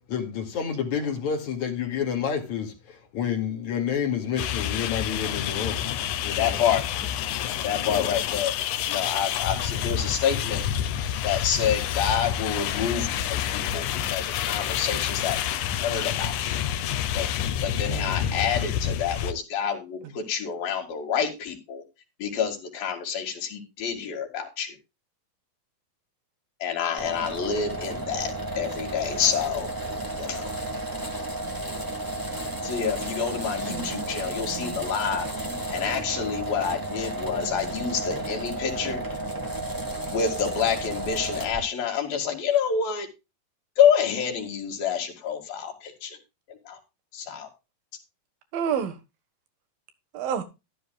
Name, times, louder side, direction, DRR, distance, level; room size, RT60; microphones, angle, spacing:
voice 1, 0.1-5.9 6.2-6.6 7.9-8.2 13.6-13.8, left 7 dB, 60° left, 3.4 m, -29 dB
sound 1, 4.4-19.3, left 10 dB, 75° left, 2.0 m, -28 dB
voice 2, 6.4-6.8 7.6-8.5 8.9-10.6 11.2-16.5 17.1-17.3 17.6-21.8 22.2-24.8 26.6-29.7 30.2-30.5 32.6-39.0 40.1-43.1 43.8-46.2 46.5-46.8 47.1-47.5, left 7 dB, 90° left, 4.1 m, -28 dB
sound 2, 27.0-41.6, right 1 dB, 15° right, 0.6 m, -32 dB
voice 3, 33.7-34.8 35.4-36.4 37.5-37.6 48.5-48.9 50.1-50.4, right 8 dB, 85° right, 3.3 m, -32 dB
13.0 x 12.5 x 2.3 m
omnidirectional pair, 4.0 m